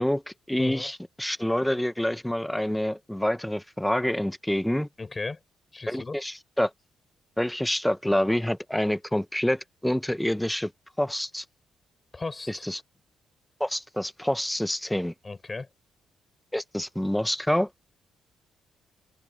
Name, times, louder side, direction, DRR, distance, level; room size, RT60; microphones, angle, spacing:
voice 1, 0.0-4.9 5.9-6.7 7.4-10.7 11.0-11.4 12.5-12.8 13.6-15.1 16.5-17.7, left 1 dB, 5° left, 0.9 m, -27 dB
voice 2, 0.6-0.9 5.0-5.4 5.7-6.2 12.1-12.7 15.2-15.7, left 3 dB, 25° left, 6.8 m, -35 dB
open air
cardioid pair, 90°, 0 cm